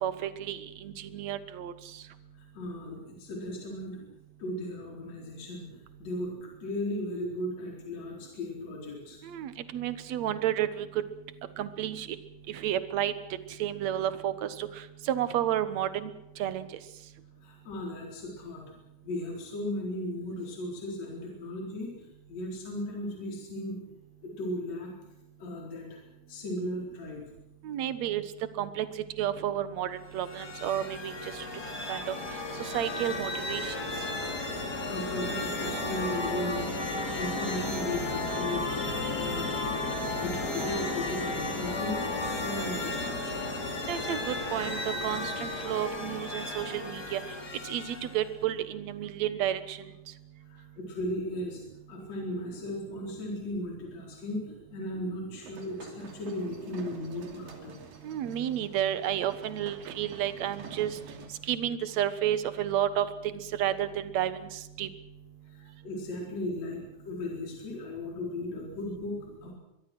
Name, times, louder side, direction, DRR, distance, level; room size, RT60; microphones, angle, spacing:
voice 1, 0.0-1.7 9.2-11.0 11.6-12.2 12.5-13.1 13.6-16.1 16.4-16.7 27.6-28.2 28.6-28.9 29.2-31.5 31.9-32.2 32.6-33.8 43.8-47.2 47.6-49.8 58.0-61.0 61.4-63.1 63.3-64.9, right 11 dB, 60° right, 12 dB, 2.2 m, -31 dB
voice 2, 2.4-4.0 4.4-5.7 6.0-9.2 17.4-18.6 19.0-22.0 22.3-23.8 24.2-24.9 25.4-26.0 26.3-27.2 34.9-36.7 37.2-38.7 39.2-39.5 40.1-43.6 50.5-51.6 51.9-57.8 65.5-69.5, left 1 dB, 50° left, -1 dB, 5.3 m, -36 dB
sound 1, 30.1-48.3, left 2 dB, 30° left, 3.5 m, -34 dB
sound 2, 55.4-61.3, right 4 dB, 80° right, 4.4 m, -48 dB
24.0 x 22.5 x 6.2 m, 0.88 s
omnidirectional pair, 4.0 m